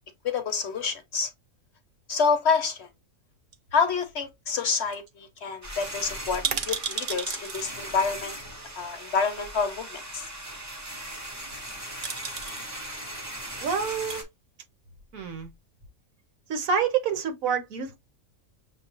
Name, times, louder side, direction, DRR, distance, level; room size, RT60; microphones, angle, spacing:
voice 1, 0.2-1.3 2.1-2.9 3.7-8.3 8.8-10.3, left 5 dB, 60° left, 0.8 m, -27 dB
sound 1, 3.5-4.3 4.6-4.7 4.9-5.1 5.4-5.5 6.2-7.6 8.8-8.9 11.5-11.7 12.0-12.7 13.8-14.2 14.8-15.5 15.8-15.9, right 6 dB, 50° right, 0.6 m, -33 dB
sound 2, 5.6-14.2, right 1 dB, 15° right, 0.9 m, -39 dB
voice 2, 13.6-14.3 15.1-15.5 16.5-18.0, right 6 dB, 70° right, 1.3 m, -27 dB
6.7 x 2.3 x 2.9 m
omnidirectional pair, 1.5 m